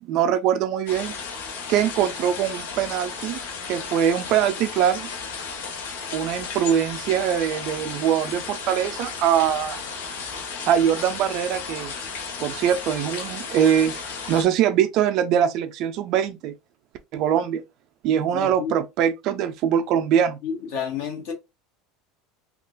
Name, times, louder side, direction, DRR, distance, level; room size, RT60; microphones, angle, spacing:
voice 1, 0.0-1.1 1.7-3.4 3.7-5.1 6.1-9.8 10.7-11.9 12.4-13.9 14.3-16.5 17.1-17.6 18.0-20.4, right 9 dB, 40° right, 0.3 m, -22 dB
sound 1, 0.9-14.4, left 5 dB, 85° left, 0.9 m, -34 dB
voice 2, 18.3-18.7 20.4-21.3, left 7 dB, 60° left, 1.4 m, -30 dB
3.5 x 2.4 x 2.5 m
cardioid pair, 175°, 0 cm